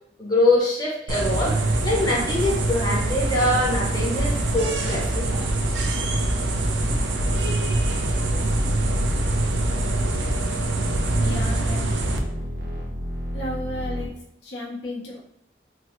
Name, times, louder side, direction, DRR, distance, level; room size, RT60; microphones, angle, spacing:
voice 1, 0.2-1.6 1.8-5.4, left 2 dB, 25° left, -4 dB, 0.7 m, -23 dB
sound 1, 1.1-12.2, right 2 dB, 90° right, 0.5 m, -24 dB
sound 2, 5.2-14.1, equal, 60° right, 0.7 m, -31 dB
voice 2, 11.2-12.0 13.3-14.1 14.4-15.2, left 1 dB, 85° left, -4 dB, 0.9 m, -33 dB
3.4 x 2.0 x 3.1 m, 0.70 s
head